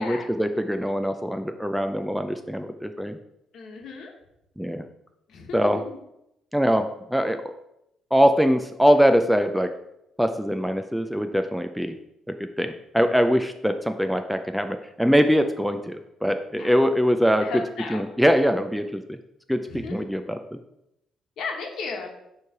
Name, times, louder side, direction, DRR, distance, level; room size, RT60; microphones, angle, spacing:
voice 1, 0.0-3.2 4.6-4.8 5.5-5.8 6.5-7.4 8.1-9.7 10.2-12.0 12.4-17.5 17.9-19.2 19.5-20.4, equal, ahead, 7 dB, 0.3 m, -22 dB
voice 2, 3.5-4.1 5.3-6.0 16.6-16.8 17.4-18.0 19.7-20.1 21.4-22.1, left 4 dB, 65° left, 2 dB, 1.1 m, -34 dB
6.9 x 3.2 x 4.8 m, 0.83 s
cardioid pair, 145°, 0 cm